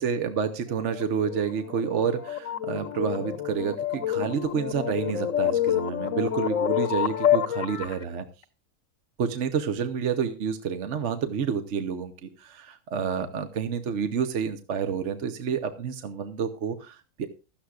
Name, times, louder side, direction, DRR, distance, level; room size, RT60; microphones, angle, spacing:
voice 1, 0.0-8.3 9.2-17.3, right 7 dB, 55° right, 8 dB, 1.1 m, -29 dB
sound 1, 0.7-8.0, left 10 dB, 65° left, 1.3 m, -28 dB
16.0 x 13.0 x 2.4 m, 0.32 s
omnidirectional pair, 1.5 m